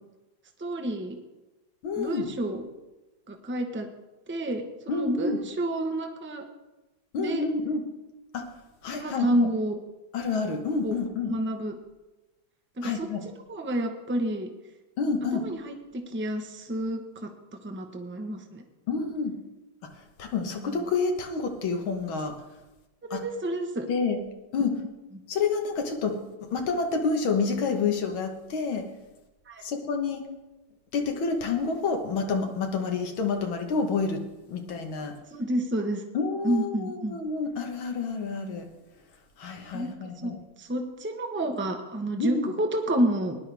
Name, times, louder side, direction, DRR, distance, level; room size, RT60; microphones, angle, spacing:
voice 1, 0.6-1.2 2.0-2.6 3.3-3.9 4.3-6.4 7.2-7.5 8.9-9.8 10.8-11.0 11.3-11.8 12.8-13.1 13.5-14.5 15.4-17.3 17.6-18.6 20.6-20.8 23.0-23.9 29.5-29.6 35.3-36.0 36.4-37.2 39.7-39.9 40.2-40.3 40.6-43.4, right 1 dB, 10° right, 4 dB, 0.6 m, -29 dB
voice 2, 1.8-2.3 4.9-5.4 7.1-7.8 8.3-8.5 8.8-9.5 10.1-11.3 12.8-13.2 15.0-15.4 18.9-19.3 20.2-22.3 23.1-23.2 23.9-24.2 24.5-24.8 25.3-28.8 29.6-30.2 30.9-34.2 34.5-35.1 36.1-38.7 39.4-40.4 42.2-42.5, left 4 dB, 90° left, 4 dB, 2.1 m, -28 dB
18.5 x 11.0 x 3.4 m, 1.1 s
omnidirectional pair, 2.2 m